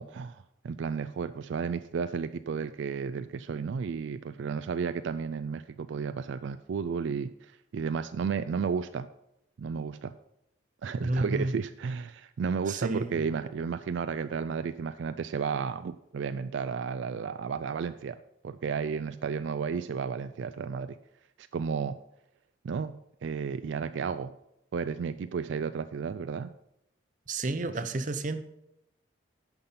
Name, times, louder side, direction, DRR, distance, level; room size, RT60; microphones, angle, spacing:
voice 1, 0.0-9.1 9.6-10.1 10.8-21.0 21.4-22.0 22.6-24.3 24.7-26.5 27.7-27.8, right 6 dB, 70° right, 11 dB, 0.3 m, -33 dB
voice 2, 11.0-11.5 12.7-13.2 27.3-28.4, right 2 dB, 40° right, 10 dB, 0.7 m, -30 dB
10.5 x 5.8 x 5.5 m, 0.82 s
head